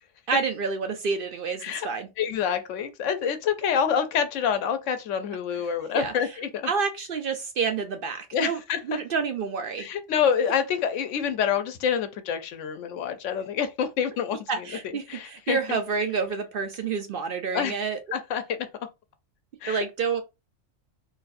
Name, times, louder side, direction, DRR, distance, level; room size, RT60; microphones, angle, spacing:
voice 1, 0.3-2.1 5.9-6.3 6.7-8.6 8.8-9.9 14.5-18.0 19.7-20.2, right 5 dB, 60° right, 0.6 m, -28 dB
voice 2, 2.2-6.7 8.3-9.0 9.8-14.7 15.1-15.8 17.5-17.7 18.1-18.6 19.6-19.8, left 7 dB, 75° left, 0.9 m, -27 dB
4.0 x 2.6 x 2.5 m
omnidirectional pair, 1.3 m